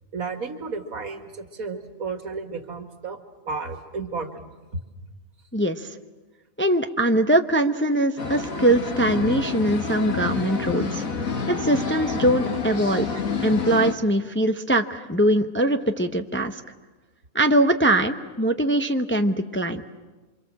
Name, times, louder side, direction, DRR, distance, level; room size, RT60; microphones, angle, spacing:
voice 1, 0.1-3.2 3.5-4.5 13.1-13.2, right 4 dB, 75° right, 6 dB, 2.4 m, -33 dB
voice 2, 5.5-5.9 6.6-11.0 11.5-13.1 13.4-16.6 17.3-19.8, right 1 dB, 10° left, 6 dB, 0.7 m, -22 dB
sound 1, 8.2-13.9, left 5 dB, 70° left, 2.1 m, -28 dB
27.5 x 26.0 x 7.6 m, 1.3 s
omnidirectional pair, 1.5 m